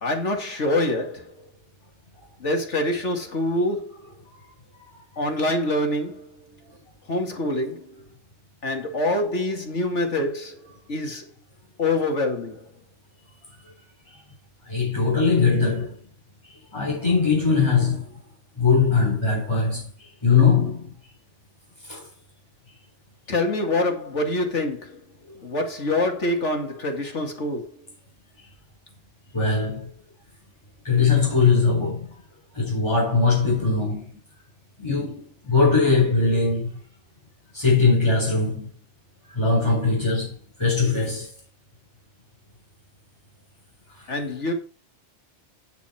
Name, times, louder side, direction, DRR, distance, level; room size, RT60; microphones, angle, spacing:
voice 1, 0.0-1.4 2.4-3.9 5.2-6.3 7.1-7.9 8.6-10.6 10.9-11.3 11.8-12.7 23.3-25.0 25.4-27.7 44.1-44.5, left 1 dB, 80° left, 2.6 m, -25 dB
voice 2, 14.7-15.9 16.7-18.1 18.6-19.9 20.2-20.9 21.9-22.0 25.3-25.4 29.3-29.9 30.8-32.1 32.5-34.0 34.8-36.7 37.5-38.7 39.3-40.3 40.6-41.3, left 4 dB, 25° left, 4.7 m, -20 dB
9.6 x 8.5 x 4.4 m
omnidirectional pair, 1.2 m